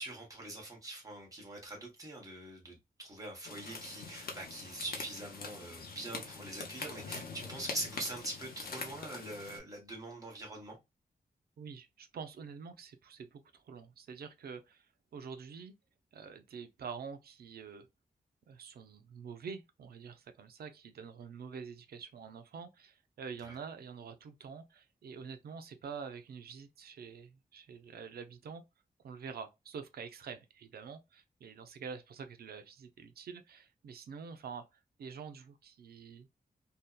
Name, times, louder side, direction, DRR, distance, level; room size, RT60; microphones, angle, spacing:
voice 1, 0.0-10.8 23.4-23.6, right 2 dB, 20° right, 1.1 m, -43 dB
sound 1, 3.4-9.6, left 4 dB, 80° left, 0.6 m, -44 dB
voice 2, 11.6-14.9 15.1-15.7 16.1-17.9 18.5-28.6 29.0-34.7 35.0-36.3, right 6 dB, 90° right, 0.4 m, -46 dB
2.7 x 2.1 x 2.3 m
wide cardioid pair, 120°, 15 cm